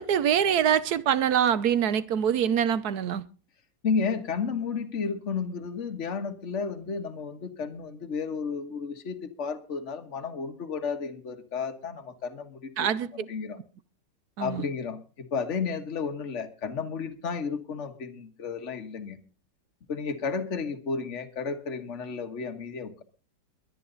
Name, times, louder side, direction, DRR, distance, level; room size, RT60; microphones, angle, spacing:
voice 1, 0.0-3.2 12.8-13.1 14.4-14.6, right 9 dB, 60° right, 1.2 m, -24 dB
voice 2, 3.8-13.6 14.4-19.2 19.9-23.0, left 5 dB, 40° left, 1.7 m, -32 dB
22.5 x 10.0 x 4.0 m
omnidirectional pair, 2.2 m